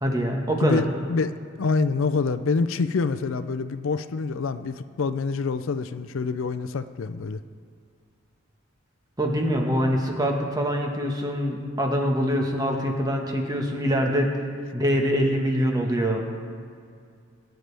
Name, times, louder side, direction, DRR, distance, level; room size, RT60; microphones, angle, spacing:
voice 1, 0.0-0.8 9.2-14.3 14.7-16.2, equal, 20° right, 1 dB, 1.4 m, -24 dB
voice 2, 0.6-7.4, left 4 dB, 75° left, 11 dB, 0.5 m, -26 dB
21.5 x 9.2 x 3.4 m, 2.2 s
head